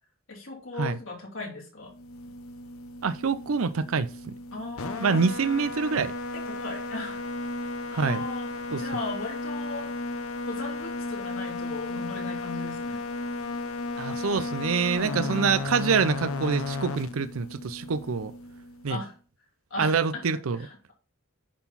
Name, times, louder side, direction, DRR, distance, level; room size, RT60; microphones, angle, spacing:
voice 1, 0.3-1.9 4.5-5.2 6.3-7.2 7.9-9.9 10.5-13.0 15.0-15.6 18.9-19.1 19.7-20.2 20.6-20.9, left 3 dB, 65° left, 3.3 m, -37 dB
sound 1, 1.9-19.1, left 3 dB, 90° left, 0.9 m, -34 dB
voice 2, 3.0-4.3 5.0-6.1 7.9-8.2 8.7-8.8 14.0-18.3 18.8-19.0 19.8-20.6, right 5 dB, 80° right, 0.5 m, -26 dB
10.0 x 4.0 x 4.1 m
head